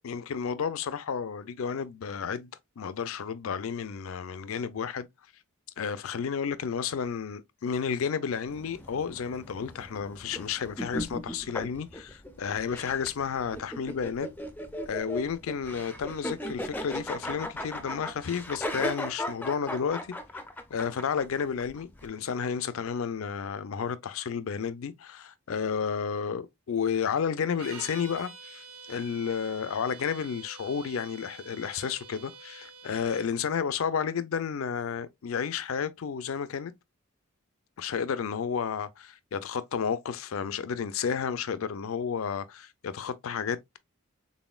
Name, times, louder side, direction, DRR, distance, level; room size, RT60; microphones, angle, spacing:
voice 1, 0.0-2.5 2.8-5.1 5.8-14.3 14.8-20.1 20.7-36.7 37.8-43.8, left 6 dB, 70° left, 0.4 m, -32 dB
sound 1, 8.5-22.1, left 1 dB, 10° left, 0.4 m, -37 dB
sound 2, 27.5-33.3, right 5 dB, 90° right, 1.1 m, -47 dB
4.1 x 3.6 x 2.3 m
head